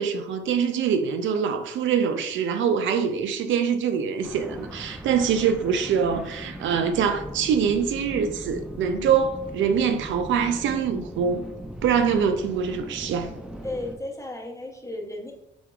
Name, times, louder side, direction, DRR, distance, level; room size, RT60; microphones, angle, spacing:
voice 1, 0.0-11.4 11.8-13.3, right 7 dB, 75° right, 0.5 m, -24 dB
sound 1, 4.2-14.0, equal, 5° right, 0.6 m, -39 dB
voice 2, 13.6-15.3, left 1 dB, 15° left, 0.9 m, -34 dB
6.1 x 3.6 x 2.4 m
cardioid pair, 90°, 20 cm